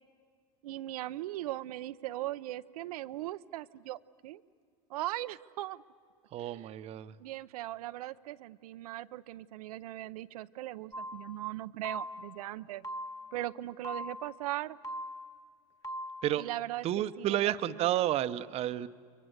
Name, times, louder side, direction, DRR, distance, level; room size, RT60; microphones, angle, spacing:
voice 1, 0.6-4.4 4.9-5.8 6.4-6.7 7.2-12.8 13.3-14.8 16.4-16.9 17.2-17.6, right 15 dB, 90° right, 12 dB, 0.6 m, -39 dB
voice 2, 6.3-7.2 16.2-16.5 16.8-18.9, right 13 dB, 35° right, 13 dB, 0.7 m, -31 dB
sound 1, 10.9-11.4 11.8-12.4 12.8-13.4 13.8-14.4 14.8-15.4 15.8-16.4, equal, 15° left, 1.5 m, -41 dB
29.0 x 23.5 x 8.0 m, 2.1 s
supercardioid pair, 140°, 19 cm